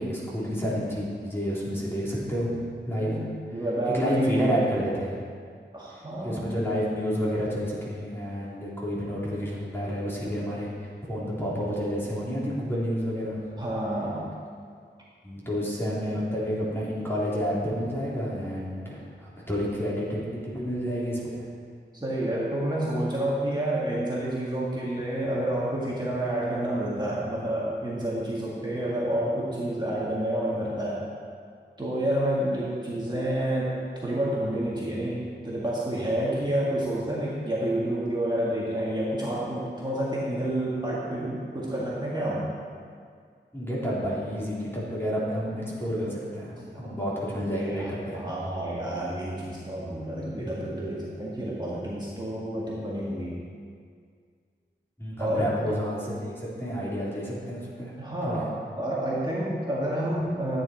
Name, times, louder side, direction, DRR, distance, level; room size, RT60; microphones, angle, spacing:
voice 1, 0.0-3.2 3.9-5.2 6.2-13.4 15.2-21.5 43.5-48.2 50.4-50.5 55.0-57.9 58.3-58.4, equal, 10° left, -7 dB, 3.6 m, -30 dB
voice 2, 3.5-4.5 5.7-6.5 13.6-14.3 21.9-31.0 31.8-33.7 34.0-42.5 46.7-46.9 47.5-53.4 55.2-55.5 58.0-60.6, right 1 dB, 20° right, -7 dB, 2.2 m, -29 dB
14.0 x 9.5 x 4.5 m, 2.1 s
wide cardioid pair, 80°, 19 cm